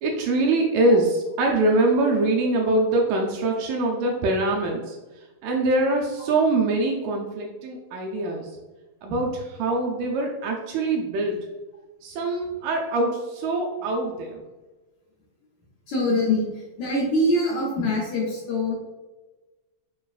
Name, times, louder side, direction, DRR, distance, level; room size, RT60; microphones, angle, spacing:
voice 1, 0.0-5.0 5.4-8.5 9.0-11.4 12.0-14.4, right 2 dB, 80° right, 0 dB, 2.0 m, -23 dB
voice 2, 15.9-16.5 16.8-18.7, left 1 dB, 75° left, -5 dB, 1.8 m, -23 dB
6.7 x 2.4 x 2.4 m, 1.2 s
omnidirectional pair, 4.0 m